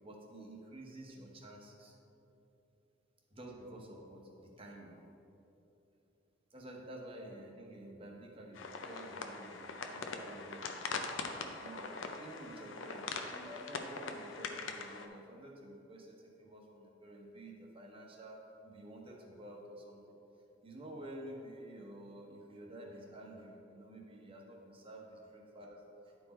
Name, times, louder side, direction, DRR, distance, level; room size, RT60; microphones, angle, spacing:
voice 1, 0.0-2.0 3.3-5.1 6.5-10.9 11.3-20.1 20.6-26.3, right 1 dB, 30° right, 0 dB, 1.1 m, -50 dB
sound 1, 8.5-15.1, left 4 dB, 80° left, 0.6 m, -42 dB
10.0 x 4.7 x 4.2 m, 2.9 s
head